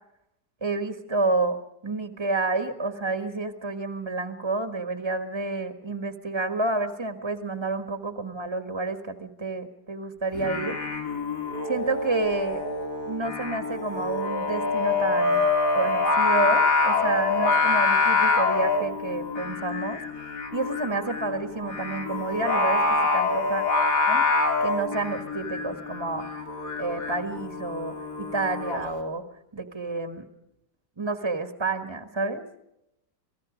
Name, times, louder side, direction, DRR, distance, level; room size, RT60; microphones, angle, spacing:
voice 1, 0.6-10.8 11.6-12.6 13.1-15.4 15.7-20.0 20.5-23.6 24.1-24.2 24.6-29.2 29.5-30.3 31.0-32.4, right 3 dB, 15° right, 7 dB, 1.5 m, -29 dB
Singing, 10.3-28.8, left 3 dB, 70° left, 4.0 m, -26 dB
28.0 x 19.0 x 5.1 m, 0.83 s
omnidirectional pair, 1.8 m